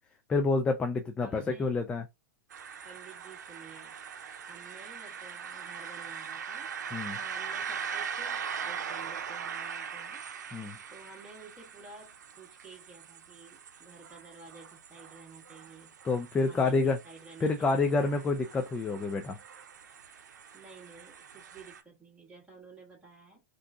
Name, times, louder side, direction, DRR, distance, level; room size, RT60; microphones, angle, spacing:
voice 1, 0.3-2.0 6.9-7.2 10.5-10.8 16.0-17.0 17.4-19.4, left 3 dB, 10° left, 0.4 m, -28 dB
voice 2, 1.2-1.9 2.8-3.9 4.5-6.7 7.2-10.2 10.9-15.9 16.4-17.9 20.5-23.4, right 3 dB, 10° right, 2.2 m, -52 dB
sound 1, 2.5-21.8, right 7 dB, 90° right, 0.6 m, -41 dB
3.6 x 2.6 x 2.4 m
hypercardioid pair, 135°, 9 cm